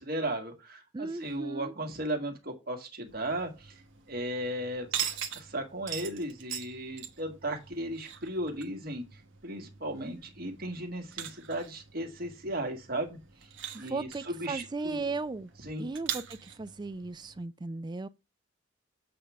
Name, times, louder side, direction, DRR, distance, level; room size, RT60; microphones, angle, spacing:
voice 1, 0.0-3.8 4.1-5.0 5.3-9.0 9.4-13.2 13.8-15.0 15.6-15.9, right 1 dB, 50° right, 1.6 m, -36 dB
voice 2, 0.9-1.7 13.7-15.5 15.8-18.1, right 3 dB, 20° right, 0.4 m, -36 dB
sound 1, 3.0-17.4, right 9 dB, 75° right, 1.2 m, -42 dB
7.7 x 3.5 x 6.1 m
head